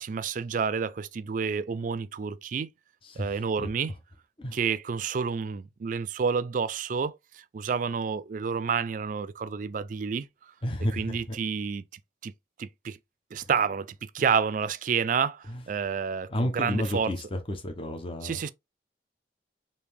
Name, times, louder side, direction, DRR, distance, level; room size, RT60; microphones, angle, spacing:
voice 1, 0.0-2.7 3.2-3.9 4.5-10.3 10.9-11.8 12.2-12.3 12.6-13.0 13.3-17.1 18.2-18.5, right 6 dB, 45° right, 0.3 m, -29 dB
voice 2, 3.0-3.7 4.4-4.6 10.6-11.4 15.5-15.6 16.3-18.4, left 1 dB, 30° left, 0.7 m, -32 dB
4.9 x 2.7 x 3.3 m
head